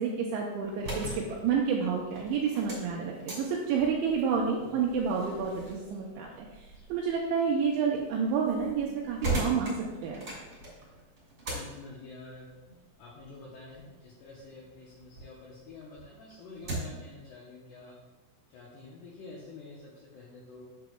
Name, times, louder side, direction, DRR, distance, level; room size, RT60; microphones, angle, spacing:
voice 1, 0.0-9.8 10.0-10.3, right 6 dB, 85° right, -1 dB, 2.6 m, -29 dB
sound 1, 0.6-15.3 15.7-17.1, right 2 dB, 30° right, 1.7 m, -40 dB
voice 2, 4.4-4.8 11.5-12.5 13.0-18.0 18.5-20.6, left 3 dB, 80° left, -4 dB, 2.4 m, -48 dB
10.5 x 6.7 x 2.3 m, 1.2 s
omnidirectional pair, 5.9 m